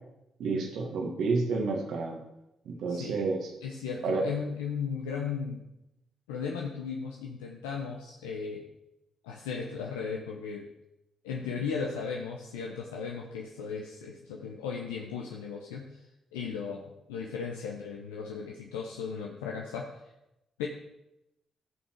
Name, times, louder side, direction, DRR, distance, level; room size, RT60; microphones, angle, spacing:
voice 1, 0.4-2.2 2.7-3.4 4.0-4.3, right 4 dB, 70° right, 2 dB, 1.8 m, -30 dB
voice 2, 3.6-5.6 6.3-8.7 9.2-10.7 11.2-16.0 16.3-19.9 20.6-20.7, left 6 dB, 85° left, 0 dB, 0.8 m, -36 dB
14.0 x 5.6 x 4.6 m, 0.90 s
hypercardioid pair, 45°, 0 cm